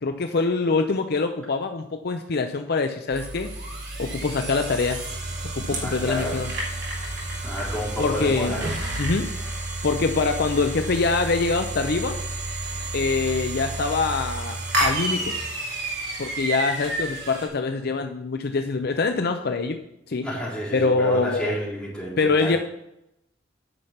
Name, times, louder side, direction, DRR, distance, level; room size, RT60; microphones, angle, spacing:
voice 1, 0.0-3.5 4.0-5.0 5.5-6.5 8.0-8.6 9.0-12.2 12.9-15.3 16.2-19.8 20.1-20.3 20.7-21.5 22.2-22.6, left 3 dB, 55° left, 6 dB, 0.6 m, -24 dB
sound 1, 3.1-17.5, right 2 dB, 55° right, 3.0 m, -30 dB
voice 2, 5.8-6.4 7.4-9.0 20.2-22.5, equal, 5° left, -8 dB, 3.9 m, -30 dB
9.6 x 5.7 x 5.8 m, 0.83 s
head